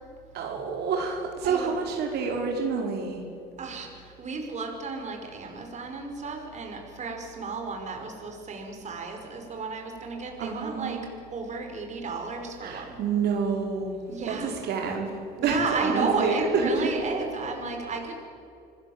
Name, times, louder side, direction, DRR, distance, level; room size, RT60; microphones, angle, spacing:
voice 1, 0.3-3.2 10.4-11.0 12.6-16.9, right 5 dB, 75° right, 1 dB, 5.0 m, -28 dB
voice 2, 1.4-1.9 3.6-11.0 11.3-13.0 14.1-14.5 15.4-18.2, right 4 dB, 45° right, 2 dB, 5.5 m, -33 dB
26.5 x 20.0 x 8.9 m, 2.6 s
cardioid pair, 110°, 17 cm